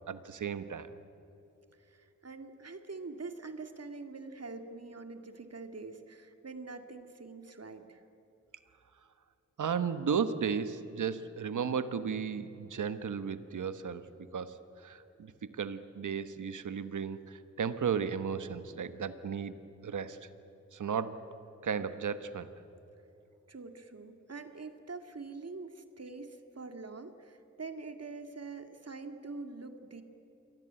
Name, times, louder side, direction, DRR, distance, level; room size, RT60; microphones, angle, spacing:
voice 1, 0.1-0.9 9.6-19.5 19.8-20.2 20.7-21.3 21.6-22.5, right 6 dB, 90° right, 12 dB, 1.2 m, -35 dB
voice 2, 1.8-8.0 23.5-30.0, right 3 dB, 55° right, 7 dB, 2.4 m, -45 dB
28.0 x 22.0 x 8.9 m, 3.0 s
cardioid pair, 40°, 30 cm